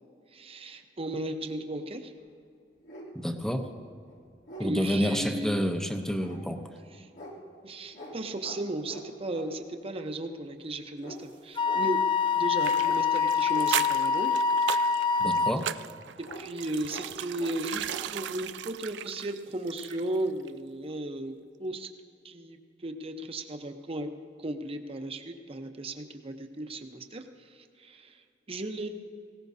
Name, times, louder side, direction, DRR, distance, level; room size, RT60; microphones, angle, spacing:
voice 1, 0.3-2.1 4.6-5.7 7.0-7.1 7.6-12.0 12.3-14.3 16.4-21.3 21.6-21.9 22.2-24.1 24.4-28.2 28.5-28.9, right 1 dB, 35° right, 6 dB, 0.8 m, -35 dB
sound 1, 2.2-2.3 2.8-3.1 3.7-3.8 4.1-4.7 6.2-6.4 7.1-7.3 7.9-8.1 8.4-8.6 8.9-9.5 11.0-11.2 11.6-11.8 12.8-13.0 13.5-13.7 16.2-16.4 16.9-17.1 17.4-17.6 17.8-18.0, equal, 85° left, 3.0 m, -44 dB
voice 2, 3.1-3.7 4.6-6.6 15.2-15.7, equal, 5° left, 6 dB, 0.7 m, -29 dB
Wind instrument woodwind instrument, 11.6-15.5, left 5 dB, 25° left, 0.4 m, -25 dB
sound 2, 12.6-20.2 20.5-20.6, right 11 dB, 75° right, 0.3 m, -37 dB
19.0 x 17.5 x 2.7 m, 2.4 s
head